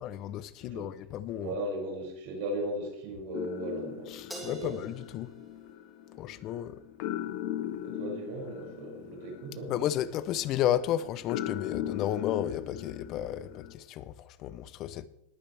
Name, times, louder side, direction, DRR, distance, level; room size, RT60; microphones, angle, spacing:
voice 1, 0.0-1.5 4.1-5.3 6.2-6.8 9.7-15.1, left 11 dB, 30° left, 0.6 m, -33 dB
voice 2, 1.4-4.1 4.4-4.7 7.8-9.7, right 1 dB, 55° right, 5.7 m, -36 dB
sound 1, 3.3-13.7, left 11 dB, 50° left, 1.1 m, -39 dB
Crash cymbal, 4.3-6.8, right 1 dB, 5° right, 3.1 m, -48 dB
20.5 x 9.2 x 3.4 m
supercardioid pair, 175°, 0 cm